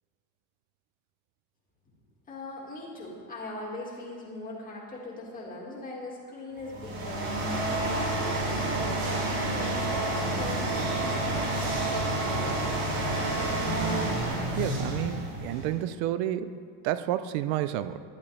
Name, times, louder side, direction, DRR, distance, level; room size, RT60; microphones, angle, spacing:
voice 1, 2.3-7.5 7.9-12.8, left 2 dB, 20° left, -3 dB, 2.0 m, -41 dB
sound 1, 6.6-15.8, right 1 dB, 40° right, 2.9 m, -29 dB
voice 2, 14.6-18.0, right 12 dB, 65° right, 12 dB, 0.6 m, -30 dB
11.5 x 11.0 x 3.4 m, 2.2 s
cardioid pair, 165°, 42 cm